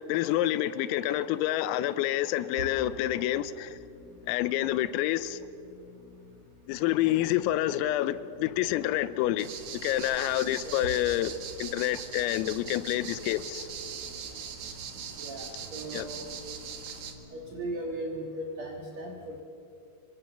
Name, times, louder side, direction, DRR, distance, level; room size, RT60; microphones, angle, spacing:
voice 1, 0.0-3.8 4.3-5.4 6.7-9.5 9.8-13.7 15.9-16.1, left 13 dB, 90° left, 3.4 m, -28 dB
sound 1, 2.7-17.8, left 2 dB, 20° right, 2.9 m, -54 dB
sound 2, 9.4-17.1, right 7 dB, 60° right, 2.7 m, -41 dB
voice 2, 15.2-16.4 17.3-19.4, right 1 dB, 80° right, 1.5 m, -37 dB
27.0 x 24.0 x 6.8 m
omnidirectional pair, 6.0 m